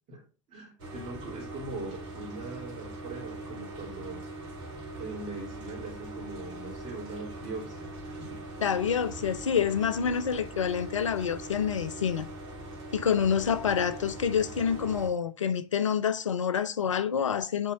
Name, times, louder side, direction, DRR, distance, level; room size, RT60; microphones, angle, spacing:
voice 1, 0.5-4.2 5.0-8.7, right 3 dB, 45° right, 3.4 m, -41 dB
sound 1, 0.8-15.1, right 2 dB, 65° right, 2.0 m, -41 dB
voice 2, 8.6-12.3 12.9-17.7, left 7 dB, 85° left, 0.5 m, -27 dB
8.9 x 4.2 x 2.6 m
figure-of-eight pair, 75°, 16 cm